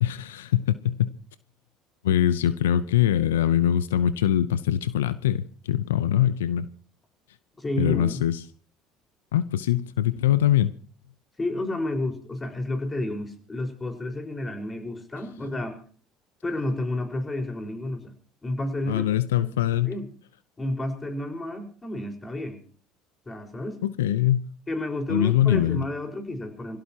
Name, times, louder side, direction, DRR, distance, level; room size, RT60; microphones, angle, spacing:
voice 1, 0.0-1.1 2.0-6.7 7.8-8.4 9.3-10.7 18.9-19.9 23.8-24.5 25.1-25.8, left 11 dB, 90° left, 0.7 m, -23 dB
voice 2, 7.6-8.2 11.4-15.8 16.4-18.1 18.4-19.1 19.4-19.5 19.8-20.1 20.6-22.6 23.2-23.8 24.7-26.8, left 1 dB, 20° left, 4.8 m, -31 dB
26.5 x 16.5 x 2.9 m
hypercardioid pair, 75°, 0 cm